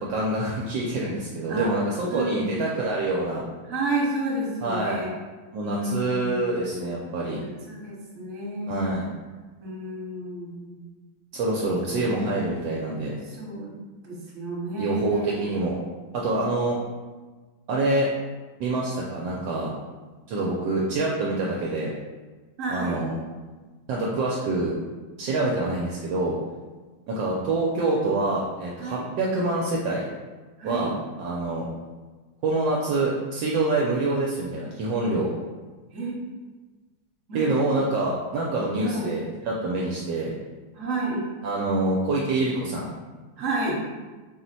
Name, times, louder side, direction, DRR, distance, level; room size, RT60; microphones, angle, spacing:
voice 1, 0.0-3.4 4.6-5.1 5.5-7.4 8.7-9.1 11.3-13.1 14.8-15.8 16.1-16.8 17.7-18.1 18.6-19.7 20.3-21.9 22.7-23.2 23.9-24.7 25.2-26.4 27.1-30.1 30.6-30.9 31.2-31.7 32.4-35.3 37.3-40.3 41.4-42.9, right 2 dB, 75° right, -3 dB, 1.2 m, -26 dB
voice 2, 2.1-2.6 3.7-5.1 5.6-7.0 7.4-9.0 9.6-10.8 11.6-12.6 13.2-13.8 14.0-15.5 22.6-23.1 28.8-29.1 30.6-31.0 35.9-36.2 37.3-37.6 38.8-39.2 40.7-41.3 43.4-43.8, right 2 dB, 45° right, -5 dB, 1.3 m, -31 dB
4.4 x 2.1 x 4.0 m, 1.3 s
omnidirectional pair, 2.2 m